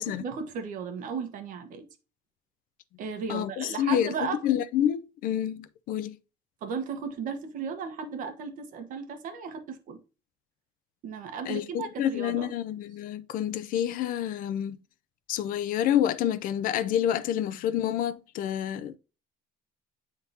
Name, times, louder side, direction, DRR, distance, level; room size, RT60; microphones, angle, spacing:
voice 1, 0.0-1.9 3.0-4.4 6.6-10.0 11.0-12.5, right 6 dB, 55° right, 1.2 m, -35 dB
voice 2, 3.3-4.1 4.4-6.2 11.5-11.7 12.0-14.8 15.3-19.0, left 10 dB, 60° left, 0.5 m, -28 dB
9.4 x 3.7 x 2.7 m
cardioid pair, 150°, 16 cm